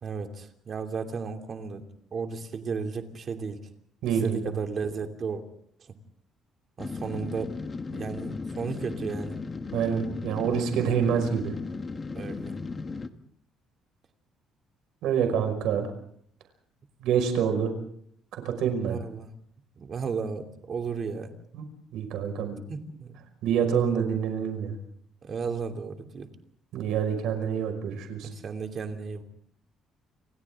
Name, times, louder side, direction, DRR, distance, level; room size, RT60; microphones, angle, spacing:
voice 1, 0.0-3.6 4.1-5.4 5.8-5.9 6.8-7.5 7.9-9.4 12.1-12.6 18.8-19.3 19.8-21.3 22.7-23.2 25.2-26.3 28.2-29.2, right 5 dB, 35° right, 5 dB, 2.8 m, -34 dB
voice 2, 4.0-4.4 9.7-11.5 15.0-15.9 17.0-17.7 18.4-19.0 21.5-21.6 21.9-22.6 23.4-24.7 26.7-28.3, right 7 dB, 75° right, 5 dB, 5.4 m, -26 dB
sound 1, 6.8-13.1, left 4 dB, 25° left, 1.4 m, -36 dB
29.0 x 27.0 x 3.7 m, 0.65 s
cardioid pair, 150°, 0 cm